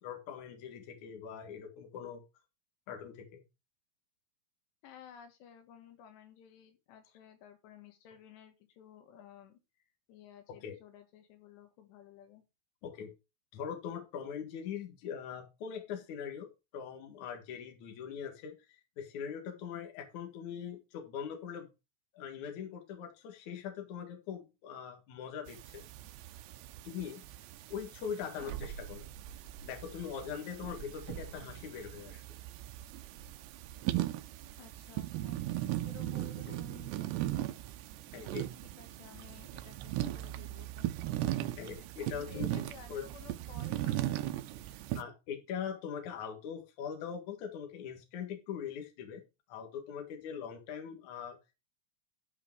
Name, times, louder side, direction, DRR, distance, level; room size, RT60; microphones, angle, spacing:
voice 1, 0.0-2.2 2.9-3.4 10.6-10.7 12.8-13.1 13.5-16.5 16.7-21.7 22.1-25.8 26.8-27.2 27.7-29.1 29.6-32.2 36.5-36.6 38.1-38.5 41.6-42.5 42.9-43.0 44.7-49.2 49.5-51.4, left 7 dB, 55° left, 4 dB, 2.7 m, -42 dB
voice 2, 4.8-12.4 34.6-35.4 35.8-37.6 38.2-40.9 42.2-44.2, left 8 dB, 85° left, 7 dB, 3.6 m, -55 dB
sound 1, 25.5-45.0, right 14 dB, 90° right, 2.8 m, -38 dB
11.5 x 5.1 x 4.7 m, 0.27 s
omnidirectional pair, 4.8 m